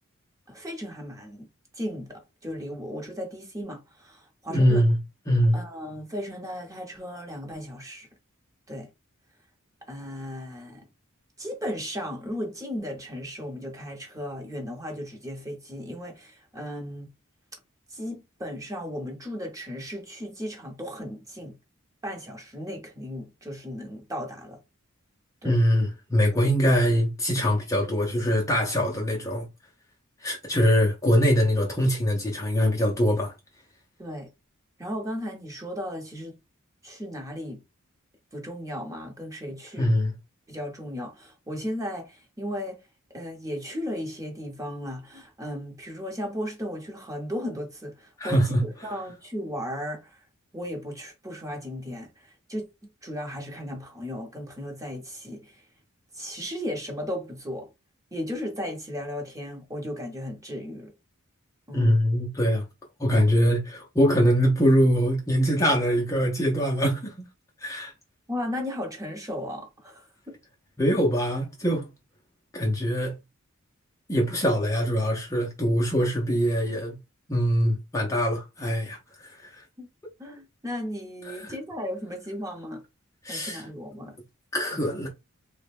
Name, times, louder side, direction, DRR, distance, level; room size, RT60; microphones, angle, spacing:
voice 1, 0.5-1.5 1.7-4.8 5.5-8.1 8.7-8.9 9.8-10.8 11.4-17.1 17.9-21.6 22.0-24.6 25.4-25.6 34.0-34.3 34.8-36.3 36.8-37.6 38.3-40.0 40.5-42.8 43.1-50.2 50.5-55.6 56.1-57.7 58.1-60.9 61.7-62.0 68.3-70.4 79.8-79.9 80.2-82.8 83.3-84.1 84.7-84.9, equal, 15° right, 0.9 m, -35 dB
voice 2, 4.5-5.0 5.3-5.6 25.4-29.5 30.2-33.3 39.8-40.1 48.2-48.6 61.7-62.6 63.0-67.2 67.6-67.9 70.8-71.9 72.5-73.2 74.1-77.0 77.3-79.6 81.3-81.5 83.2-83.6 84.5-85.1, equal, 15° left, 0.6 m, -23 dB
3.4 x 2.1 x 3.4 m
head